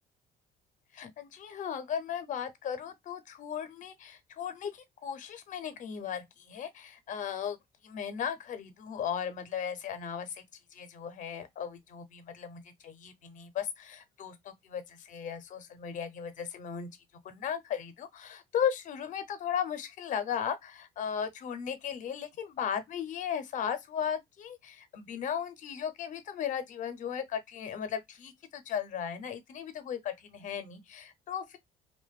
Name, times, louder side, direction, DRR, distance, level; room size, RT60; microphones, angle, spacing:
voice 1, 0.9-7.6 7.8-10.4 10.7-16.9 17.2-31.6, left 8 dB, 50° left, 0.5 m, -36 dB
2.5 x 2.1 x 2.3 m
cardioid pair, 110°, 17 cm